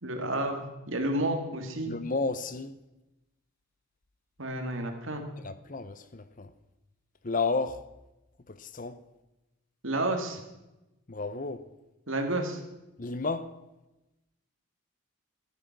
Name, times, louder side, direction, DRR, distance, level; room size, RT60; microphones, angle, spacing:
voice 1, 0.0-1.9 4.4-5.3 9.8-10.4 12.1-12.6, right 1 dB, 65° right, 2.3 m, -31 dB
voice 2, 1.9-2.8 5.4-6.5 7.2-7.9 8.5-9.0 11.1-11.7 13.0-13.5, left 3 dB, 40° left, 0.7 m, -32 dB
15.5 x 11.5 x 6.0 m
head